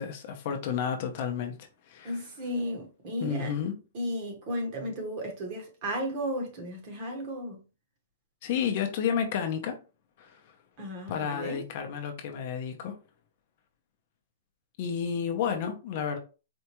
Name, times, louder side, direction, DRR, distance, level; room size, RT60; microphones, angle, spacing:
voice 1, 0.0-2.2 3.2-3.7 8.4-9.8 10.2-10.4 11.1-13.0 14.8-16.2, left 7 dB, 35° left, 0.6 m, -31 dB
voice 2, 2.0-3.5 3.9-7.6 10.8-11.7, equal, 30° right, 0.9 m, -34 dB
4.3 x 2.3 x 2.9 m
hypercardioid pair, 175°, 0 cm